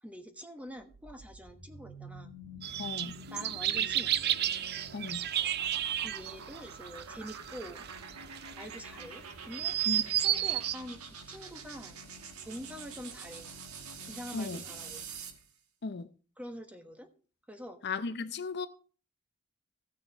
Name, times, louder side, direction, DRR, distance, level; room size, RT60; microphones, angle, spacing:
voice 1, 0.0-2.3 3.3-4.1 5.4-5.5 6.0-7.8 8.6-11.0 11.3-12.0 12.5-13.5 14.1-15.0 16.4-17.1 17.5-17.8, equal, 5° right, 1.2 m, -45 dB
sound 1, 0.7-15.5, right 4 dB, 85° right, 1.5 m, -47 dB
sound 2, 2.6-10.7, right 11 dB, 50° right, 0.5 m, -32 dB
voice 2, 2.8-3.2 4.9-5.3 9.9-10.0 14.3-14.6 15.8-16.1 17.8-18.7, left 4 dB, 50° left, 0.6 m, -35 dB
15.5 x 6.5 x 4.5 m
head